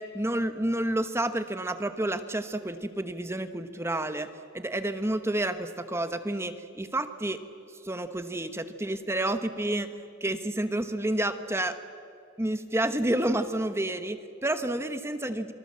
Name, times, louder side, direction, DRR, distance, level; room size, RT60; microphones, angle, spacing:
voice 1, 0.0-4.3 4.5-7.4 7.8-9.9 10.2-11.8 12.4-15.5, right 1 dB, 10° right, 9 dB, 1.0 m, -29 dB
27.5 x 24.0 x 7.4 m, 2.5 s
head